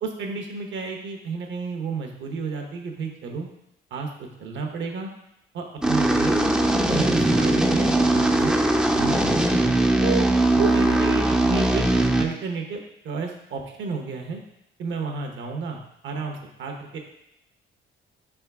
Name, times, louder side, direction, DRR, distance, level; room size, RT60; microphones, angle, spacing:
voice 1, 0.0-3.5 3.9-5.1 5.5-6.5 6.8-8.6 9.0-9.4 10.0-11.8 12.2-12.8 13.0-14.4 14.8-17.0, right 4 dB, 70° right, 3 dB, 0.8 m, -31 dB
sound 1, 5.8-12.2, right 1 dB, 5° right, 0.3 m, -20 dB
4.0 x 3.5 x 3.4 m, 0.81 s
cardioid pair, 90°, 20 cm